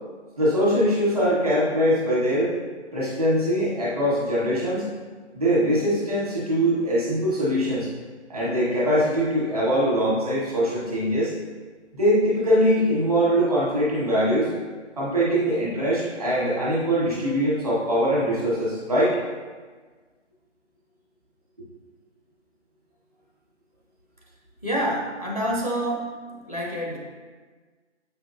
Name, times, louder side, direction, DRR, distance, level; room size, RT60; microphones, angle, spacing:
voice 1, 0.4-2.5 2.9-4.9 5.3-7.9 8.3-11.3 11.9-14.5 15.0-19.2, equal, 30° right, -7 dB, 1.5 m, -22 dB
voice 2, 24.6-27.0, equal, 35° left, -2 dB, 0.5 m, -27 dB
7.5 x 5.0 x 2.6 m, 1.4 s
figure-of-eight pair, 175°, 35 cm